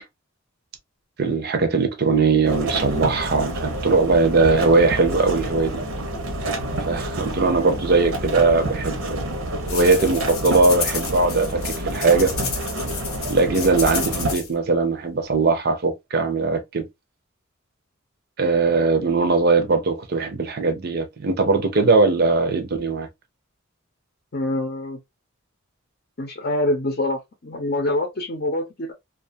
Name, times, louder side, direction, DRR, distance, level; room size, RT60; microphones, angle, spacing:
voice 1, 1.2-5.8 6.9-9.2 9.7-12.3 13.3-16.9 18.4-23.1, right 3 dB, 50° right, 0.5 m, -20 dB
sound 1, 2.4-14.4, right 1 dB, 85° right, 0.7 m, -28 dB
sound 2, 9.7-14.5, left 6 dB, 85° left, 0.8 m, -31 dB
voice 2, 24.3-25.0 26.2-28.9, left 1 dB, 45° left, 0.6 m, -25 dB
2.4 x 2.3 x 2.5 m
head